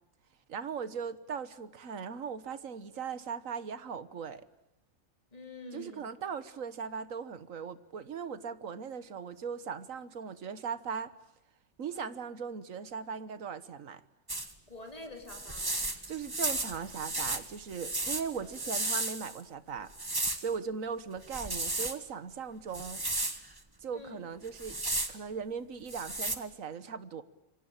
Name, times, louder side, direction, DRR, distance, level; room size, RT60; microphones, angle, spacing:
voice 1, 0.5-4.4 5.7-11.1 11.8-14.0 16.1-19.9 20.4-23.0 23.8-24.8 25.1-27.2, right 6 dB, 75° right, 14 dB, 1.6 m, -39 dB
voice 2, 5.3-6.1 14.7-15.9 23.9-24.2, left 2 dB, 30° left, 3 dB, 4.0 m, -46 dB
sound 1, 14.3-14.5 15.3-19.4 19.9-20.5 21.2-22.0 22.7-23.4 24.5-25.1 25.9-26.4, right 2 dB, 15° right, 1.5 m, -34 dB
27.0 x 23.5 x 9.0 m, 0.90 s
omnidirectional pair, 1.4 m